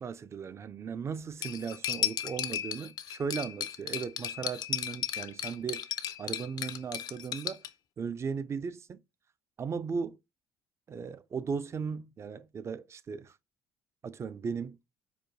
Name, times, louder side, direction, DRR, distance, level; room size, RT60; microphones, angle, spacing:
voice 1, 0.0-5.9 6.2-7.7 8.0-9.0 9.6-10.2 10.9-13.4 14.0-14.8, right 6 dB, 35° right, 0.4 m, -37 dB
Cutlery silverware, 1.4-7.7, left 10 dB, 55° left, 0.4 m, -35 dB
4.6 x 2.2 x 2.6 m
supercardioid pair, 70°, 8 cm